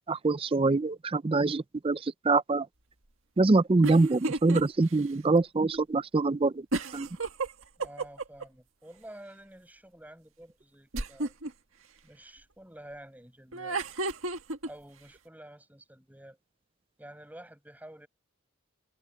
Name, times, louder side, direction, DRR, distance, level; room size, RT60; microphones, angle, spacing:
voice 1, 0.1-2.7 3.4-6.7 6.9-7.1, right 3 dB, 25° right, 0.4 m, -25 dB
sound 1, 3.8-4.6 5.0-5.1 6.7-8.4 10.9-11.5 13.5-14.7, right 2 dB, 65° right, 1.8 m, -31 dB
voice 2, 7.8-11.3 12.0-13.8 14.7-16.4 17.0-18.1, right 1 dB, 5° right, 7.0 m, -49 dB
head